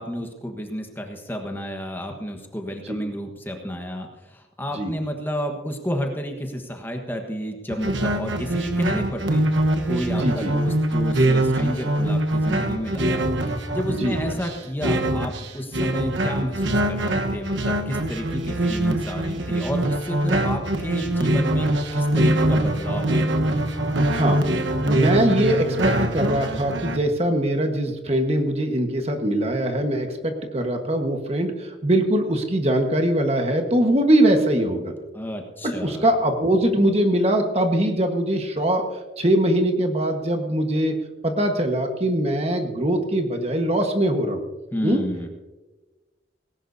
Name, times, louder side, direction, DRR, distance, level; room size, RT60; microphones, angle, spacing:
voice 1, 0.0-9.4 9.9-13.2 13.7-23.2 35.1-36.1 44.7-45.3, equal, 10° left, 3 dB, 1.3 m, -31 dB
sound 1, 7.7-27.0, right 1 dB, 80° right, 1.2 m, -23 dB
voice 2, 10.2-10.5 14.0-14.2 24.1-24.4 24.8-34.9 35.6-38.8 39.2-41.0 41.2-44.4 44.8-45.0, right 1 dB, 35° right, 5 dB, 1.4 m, -22 dB
19.0 x 17.5 x 2.8 m, 1.2 s
head